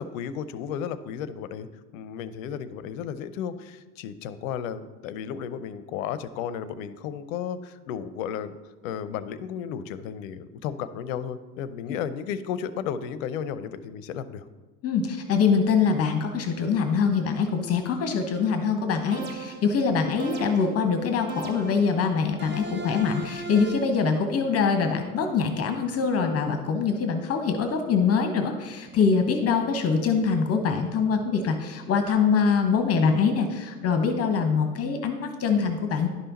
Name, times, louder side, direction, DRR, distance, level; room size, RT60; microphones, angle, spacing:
voice 1, 0.0-1.7 1.9-8.5 8.8-14.4, left 8 dB, 55° left, 14 dB, 0.7 m, -33 dB
voice 2, 14.8-36.1, left 5 dB, 30° left, 6 dB, 1.0 m, -24 dB
sound 1, 19.1-19.8 20.2-20.8 21.3-21.9 22.4-24.0, right 2 dB, 20° right, 0.8 m, -37 dB
11.0 x 5.6 x 4.0 m, 1.3 s
figure-of-eight pair, 85°, 50 cm